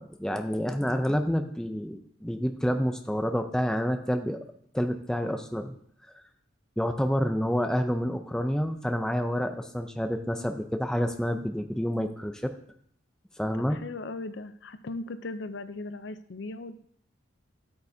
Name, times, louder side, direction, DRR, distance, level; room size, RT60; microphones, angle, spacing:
voice 1, 0.0-4.4 4.7-5.7 6.8-12.5 13.4-13.8, equal, 5° left, 6 dB, 0.4 m, -28 dB
voice 2, 13.6-16.8, left 2 dB, 65° left, 12 dB, 0.5 m, -38 dB
12.0 x 8.5 x 2.7 m, 0.66 s
head